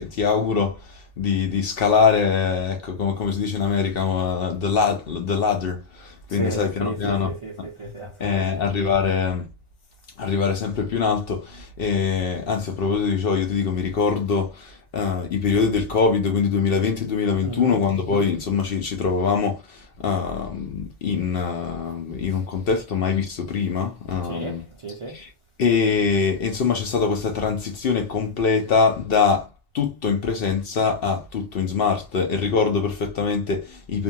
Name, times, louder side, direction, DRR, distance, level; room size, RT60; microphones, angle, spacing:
voice 1, 0.0-7.3 7.6-7.7 8.2-9.5 10.2-24.6 25.1-25.3 25.6-29.5 29.7-34.0, left 5 dB, 60° left, 0.7 m, -23 dB
voice 2, 6.3-8.7 17.4-17.8 22.3-22.4 22.7-22.8 24.2-25.2, right 3 dB, 55° right, 0.3 m, -33 dB
2.6 x 2.3 x 2.7 m
omnidirectional pair, 1.4 m